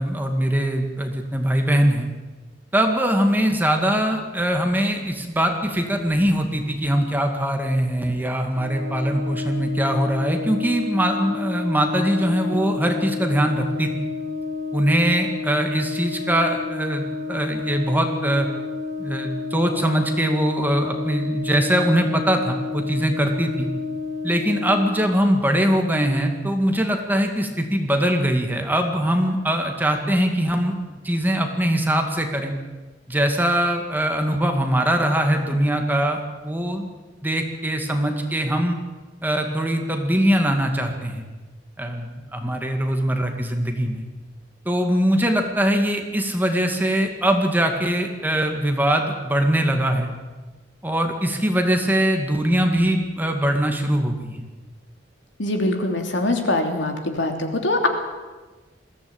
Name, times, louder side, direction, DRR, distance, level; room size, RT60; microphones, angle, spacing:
voice 1, 0.0-2.1 2.7-13.9 14.7-18.5 19.0-23.7 24.2-30.8 31.0-32.5 33.1-36.9 37.2-38.8 39.2-41.3 41.8-44.0 44.7-50.1 50.8-54.5, right 1 dB, 10° right, 3 dB, 2.1 m, -22 dB
Brass instrument, 8.6-25.0, left 4 dB, 50° right, 2.7 m, -30 dB
voice 2, 55.4-57.9, left 2 dB, 70° left, 4 dB, 3.2 m, -23 dB
21.0 x 16.0 x 9.0 m, 1.3 s
head